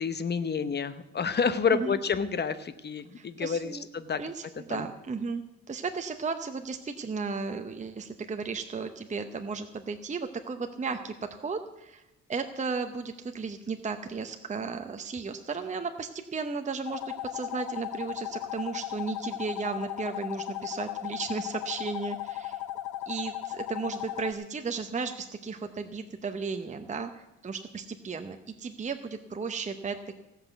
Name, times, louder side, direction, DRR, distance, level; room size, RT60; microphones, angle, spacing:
voice 1, 0.0-4.2 4.7-4.9, left 6 dB, 35° left, 12 dB, 1.0 m, -29 dB
voice 2, 3.1-3.9 4.2-5.4 5.7-12.0 12.3-22.6 23.1-30.2, right 4 dB, 25° right, 7 dB, 0.8 m, -35 dB
sound 1, 16.9-24.3, left 13 dB, 80° left, 0.7 m, -36 dB
16.5 x 5.8 x 8.1 m, 1.0 s
cardioid pair, 95°, 31 cm